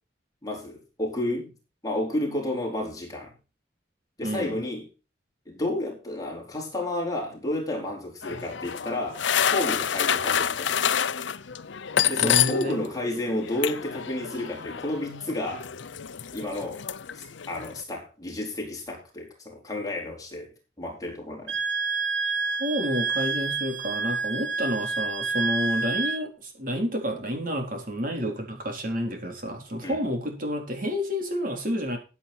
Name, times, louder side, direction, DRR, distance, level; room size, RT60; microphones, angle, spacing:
voice 1, 0.4-1.5 1.8-3.3 4.2-4.8 5.5-9.2 9.5-10.9 12.1-15.7 16.3-16.8 17.1-20.5 20.8-21.6 29.8-30.0, left 1 dB, 20° left, 0 dB, 4.5 m, -31 dB
voice 2, 4.2-4.6 12.2-12.8 22.5-32.0, equal, 50° right, 3 dB, 4.1 m, -29 dB
sound 1, 8.2-12.9 13.1-17.8, left 9 dB, 85° left, 0.7 m, -28 dB
Wind instrument woodwind instrument, 21.5-26.2, right 4 dB, 75° right, 1.5 m, -28 dB
14.0 x 8.4 x 4.3 m, 0.31 s
head